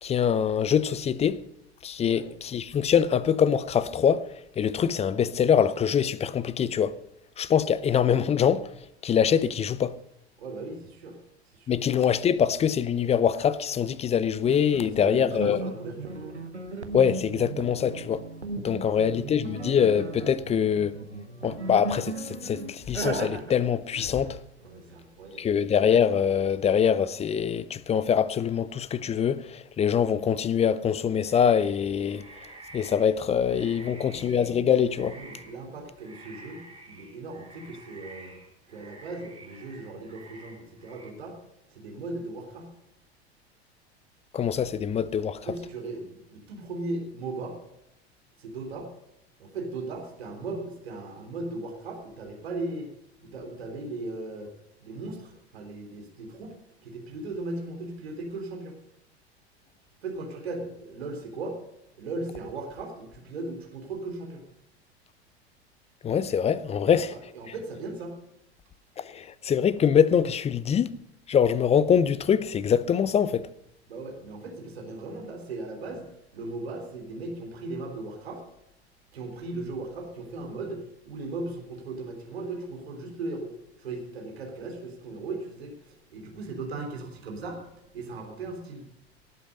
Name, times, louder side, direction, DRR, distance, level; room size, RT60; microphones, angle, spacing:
voice 1, 0.0-1.4 1.8-4.2 4.6-6.9 7.4-8.7 9.0-9.9 11.7-15.6 16.9-18.2 18.6-20.9 21.4-24.4 25.4-32.2 32.7-35.1 44.3-45.4 66.0-67.1 69.0-70.9 71.3-73.5, left 8 dB, 20° left, 0.6 m, -24 dB
voice 2, 10.4-11.2 11.5-11.8 14.8-16.3 18.8-19.1 24.6-25.5 33.8-34.2 34.7-38.3 38.7-41.4 41.7-42.7 45.4-47.6 48.4-48.9 49.4-52.9 53.2-54.5 54.8-56.5 56.8-58.8 60.0-61.6 62.0-64.4 66.9-68.2 73.9-76.1 76.3-78.4 79.1-83.5 83.8-87.6 87.9-88.9, right 2 dB, 70° right, 3.3 m, -37 dB
sound 1, 14.4-25.0 25.8-26.4, right 2 dB, 85° right, 1.3 m, -37 dB
sound 2, 31.2-34.6 34.9-35.6 35.9-41.1, right 2 dB, 15° right, 5.8 m, -49 dB
18.0 x 8.4 x 5.3 m
figure-of-eight pair, 80°, 32 cm